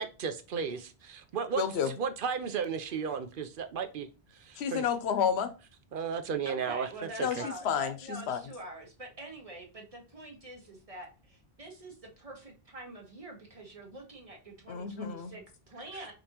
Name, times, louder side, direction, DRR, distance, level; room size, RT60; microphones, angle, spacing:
voice 1, 0.0-1.6 2.0-4.1 4.3-4.8 5.9-6.9 7.2-7.4 15.9-16.1, right 6 dB, 60° right, 0.7 m, -34 dB
voice 2, 1.5-1.9 4.6-5.5 7.2-8.4 14.7-15.3, left 7 dB, 90° left, 0.9 m, -30 dB
voice 3, 6.4-16.1, right 1 dB, 35° right, 1.5 m, -45 dB
5.2 x 2.9 x 2.9 m
omnidirectional pair, 1.0 m